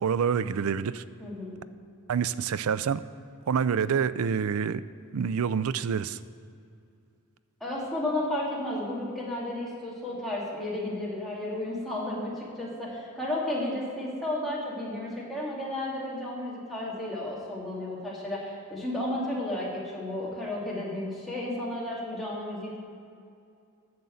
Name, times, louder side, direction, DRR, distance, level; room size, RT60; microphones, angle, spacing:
voice 1, 0.0-1.0 2.1-3.0 3.5-4.8 5.1-6.2, right 7 dB, 75° right, 15 dB, 0.4 m, -27 dB
voice 2, 1.2-1.6 7.6-22.8, left 1 dB, ahead, -7 dB, 2.4 m, -33 dB
9.6 x 6.9 x 7.8 m, 2.4 s
head